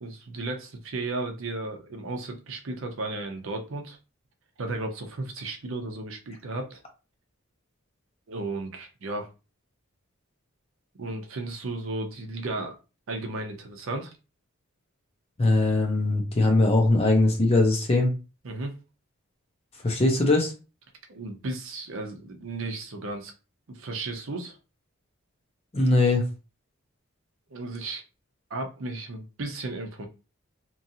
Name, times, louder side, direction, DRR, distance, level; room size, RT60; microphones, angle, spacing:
voice 1, 0.0-4.0 4.6-6.8 8.3-9.3 11.0-12.7 13.1-14.1 18.4-18.8 21.1-23.3 23.7-24.6 27.5-28.0 28.5-30.1, right 2 dB, 65° right, 4 dB, 0.6 m, -34 dB
voice 2, 15.4-18.1 19.8-20.5 25.7-26.2, left 2 dB, 30° left, 2 dB, 0.7 m, -21 dB
3.0 x 2.5 x 2.7 m, 0.31 s
head